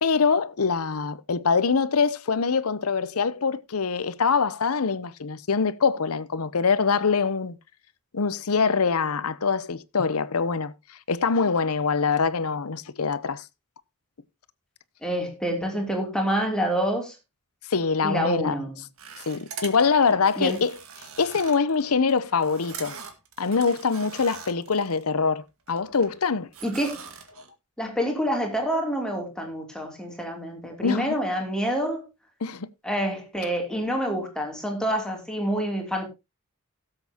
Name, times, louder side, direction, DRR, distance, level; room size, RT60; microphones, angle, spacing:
voice 1, 0.0-7.6 8.1-10.7 11.1-13.4 17.7-18.6 19.3-20.7 21.2-23.0 23.4-26.5 30.8-31.1 32.4-32.7, left 5 dB, 70° left, 0.8 m, -24 dB
voice 2, 15.0-17.1 18.0-18.7 20.4-20.6 26.6-27.1 27.8-32.1 32.8-36.0, equal, 5° left, 3.0 m, -27 dB
sound 1, 19.0-25.0 25.4-26.2 26.5-27.5, right 6 dB, 65° right, 2.0 m, -42 dB
17.5 x 7.8 x 2.9 m
head